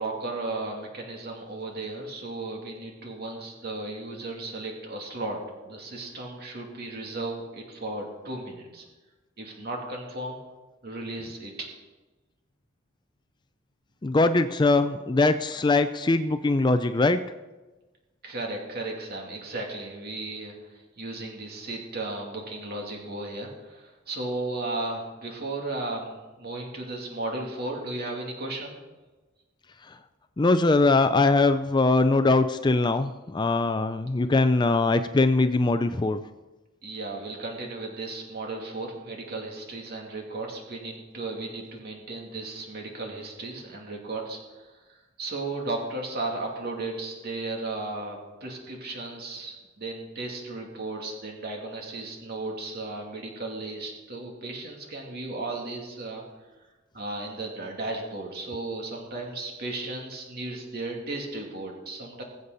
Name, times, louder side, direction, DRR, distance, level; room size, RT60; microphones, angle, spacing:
voice 1, 0.0-5.4 5.6-8.8 9.4-10.4 10.8-11.5 18.2-28.7 36.8-56.2 56.9-62.2, right 2 dB, 55° right, 0 dB, 2.7 m, -35 dB
voice 2, 14.0-17.2 30.4-36.2, left 3 dB, 20° left, 10 dB, 0.4 m, -22 dB
22.0 x 8.1 x 4.1 m, 1.2 s
head